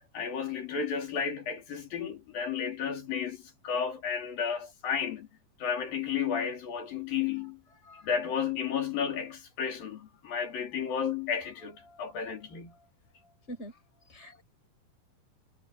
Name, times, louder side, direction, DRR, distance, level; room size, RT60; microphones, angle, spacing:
voice 1, 0.1-5.3 5.6-7.6 8.0-12.8, left 7 dB, 80° left, 5.7 m, -32 dB
voice 2, 14.1-14.4, right 1 dB, 20° left, 7.6 m, -43 dB
omnidirectional pair, 4.0 m